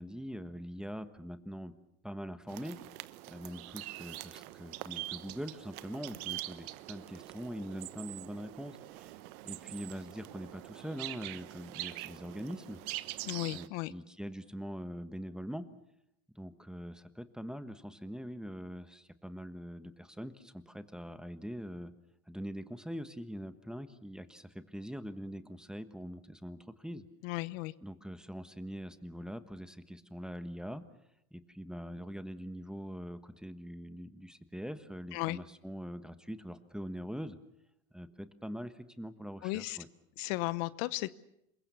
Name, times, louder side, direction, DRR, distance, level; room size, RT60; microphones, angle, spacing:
voice 1, 0.0-1.8 2.0-2.8 3.3-9.2 9.4-12.8 13.5-15.7 16.3-21.9 22.3-27.0 27.8-30.8 31.3-37.4 37.9-39.9, equal, ahead, 10 dB, 1.3 m, -43 dB
sound 1, 2.5-13.7, right 18 dB, 75° right, 1.2 m, -44 dB
voice 2, 13.2-13.9 27.2-27.7 35.1-35.4 39.4-39.8 40.2-41.1, left 20 dB, 65° left, 17 dB, 1.0 m, -35 dB
27.0 x 23.0 x 7.0 m, 0.80 s
supercardioid pair, 120°, 43 cm